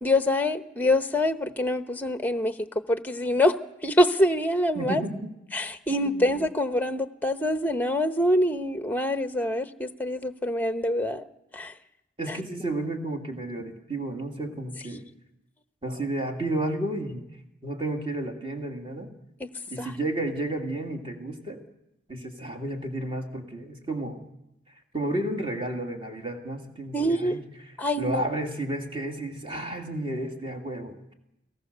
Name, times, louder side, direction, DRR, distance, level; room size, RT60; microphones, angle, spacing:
voice 1, 0.0-3.6 3.8-5.0 5.5-11.3 11.5-11.7 12.3-12.4 19.4-19.5 19.8-19.9 26.9-27.4 27.8-28.2, left 1 dB, 10° left, 9 dB, 0.8 m, -25 dB
voice 2, 4.7-5.3 6.0-6.3 12.2-15.1 15.8-17.3 17.6-19.1 19.7-21.6 22.1-24.2 24.9-27.4 28.0-31.1, right 1 dB, 25° right, 3 dB, 2.4 m, -32 dB
29.5 x 18.5 x 6.8 m, 0.89 s
head